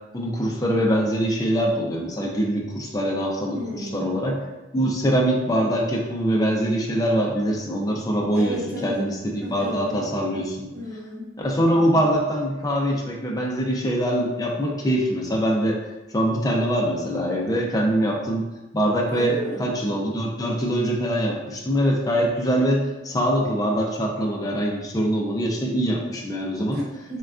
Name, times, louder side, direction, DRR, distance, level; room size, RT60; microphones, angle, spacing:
voice 1, 0.1-4.4 4.7-10.7 11.4-15.8 16.1-18.4 18.7-26.8, equal, 20° left, -2 dB, 0.4 m, -23 dB
voice 2, 3.5-4.2 8.3-9.0 9.4-10.0 10.7-11.3 19.1-19.7 26.7-27.2, equal, 55° right, -7 dB, 1.0 m, -32 dB
3.4 x 2.2 x 2.4 m, 1.0 s
head